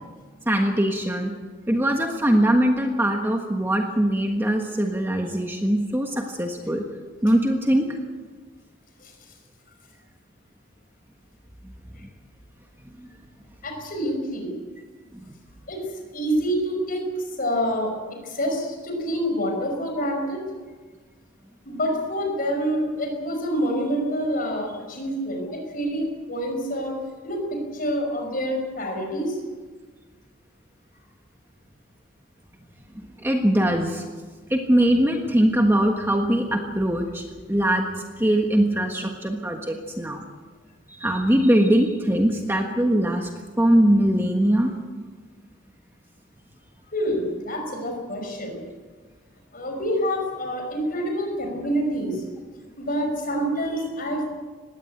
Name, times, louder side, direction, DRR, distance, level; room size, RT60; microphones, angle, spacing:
voice 1, 0.4-1.3 1.7-6.8 7.2-8.0 12.0-12.1 15.1-15.2 32.9-34.0 34.5-37.9 38.2-40.2 41.0-43.3 43.6-44.7, right 1 dB, 10° right, 3 dB, 1.4 m, -21 dB
voice 2, 13.6-14.5 15.7-15.8 16.1-17.1 17.4-20.4 21.7-26.9 27.2-29.4 46.9-48.6 49.5-52.2 52.8-54.3, equal, 45° left, 3 dB, 5.6 m, -27 dB
20.0 x 17.0 x 9.0 m, 1.4 s
head